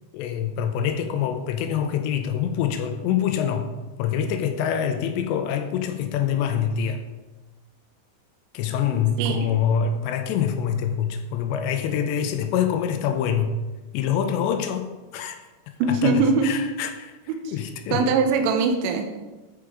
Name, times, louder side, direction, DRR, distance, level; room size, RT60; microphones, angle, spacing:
voice 1, 0.1-3.7 4.0-7.0 8.5-13.6 13.9-14.9 15.1-15.4 15.9-17.1 17.5-18.0, left 8 dB, 80° left, 7 dB, 2.8 m, -25 dB
voice 2, 9.2-9.5 15.8-16.5 17.3-17.6 17.9-19.1, right 4 dB, 80° right, 4 dB, 2.9 m, -22 dB
13.5 x 5.1 x 4.9 m, 1.2 s
omnidirectional pair, 5.4 m